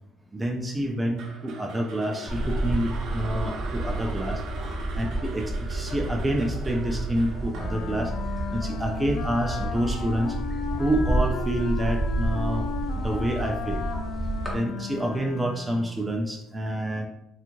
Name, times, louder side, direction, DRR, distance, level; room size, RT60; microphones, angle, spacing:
voice 1, 0.3-4.4 4.9-8.1 8.5-10.3 10.8-12.7 13.0-13.8 14.5-17.1, right 1 dB, 10° right, 1 dB, 0.3 m, -28 dB
sound 1, 1.2-9.4, right 4 dB, 70° right, 0.5 m, -42 dB
sound 2, 2.3-14.5, right 1 dB, 10° left, 0.7 m, -30 dB
Wind instrument woodwind instrument, 7.5-16.1, left 7 dB, 85° left, 0.3 m, -36 dB
2.5 x 2.3 x 3.0 m, 0.78 s
cardioid pair, 125°, 0 cm